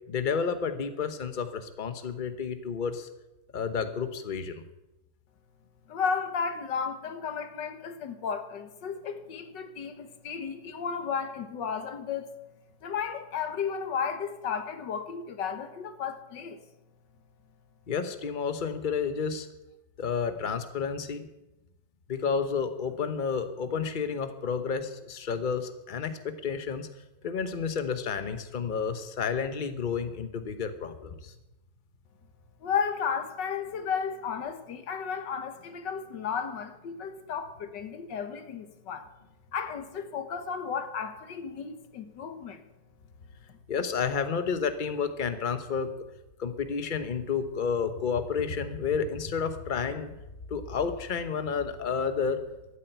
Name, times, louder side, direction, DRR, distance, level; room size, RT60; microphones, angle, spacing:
voice 1, 0.1-3.1 3.5-4.6 17.9-19.5 20.0-21.3 22.1-26.9 27.2-31.3 43.7-45.9 46.4-50.2 50.5-52.4, left 6 dB, 35° left, 0.9 m, -31 dB
voice 2, 5.9-12.3 12.8-16.6 32.6-39.1 39.5-42.6, left 6 dB, 70° left, 1.8 m, -33 dB
13.5 x 9.1 x 8.0 m
omnidirectional pair, 2.0 m